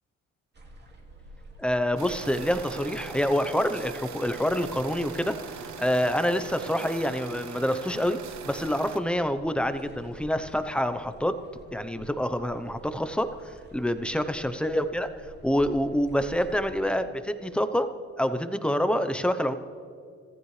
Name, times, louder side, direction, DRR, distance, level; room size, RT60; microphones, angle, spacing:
sound 1, 0.5-16.8, right 1 dB, 35° right, 2.4 m, -50 dB
voice 1, 1.6-8.2 8.5-11.4 11.7-15.1 15.4-17.9 18.2-19.5, equal, 5° left, 10 dB, 0.8 m, -27 dB
sound 2, 2.0-9.0, right 7 dB, 65° right, 1.1 m, -41 dB
26.0 x 15.0 x 3.3 m, 2.2 s
cardioid pair, 90°, 30 cm